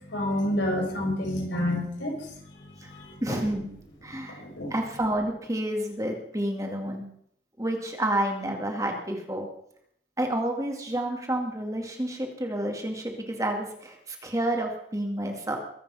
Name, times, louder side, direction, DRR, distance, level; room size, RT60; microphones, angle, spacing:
voice 1, 0.1-2.3 2.7-3.4 4.3-4.7, left 1 dB, 85° left, 0 dB, 5.9 m, -29 dB
voice 2, 3.2-3.7 4.0-4.4 4.7-7.1 7.6-9.5 10.2-15.6, right 1 dB, 20° right, 2 dB, 2.4 m, -29 dB
22.5 x 8.9 x 5.7 m, 0.69 s
head